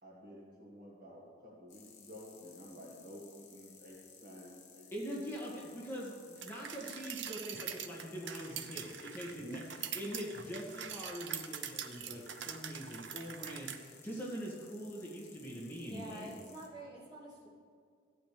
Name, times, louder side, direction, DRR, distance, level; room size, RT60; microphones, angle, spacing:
voice 1, 0.0-4.9 9.3-9.6 16.2-16.3, equal, 45° right, -3 dB, 1.8 m, -51 dB
sound 1, 1.7-16.7, left 6 dB, 35° left, 1.2 m, -59 dB
voice 2, 4.9-9.6 9.9-16.3, equal, 10° left, -6 dB, 2.0 m, -43 dB
sound 2, 6.4-13.8, right 8 dB, 65° right, 0.6 m, -43 dB
voice 3, 15.9-17.5, right 1 dB, 20° right, -7 dB, 2.5 m, -48 dB
14.5 x 9.0 x 3.4 m, 2.2 s
head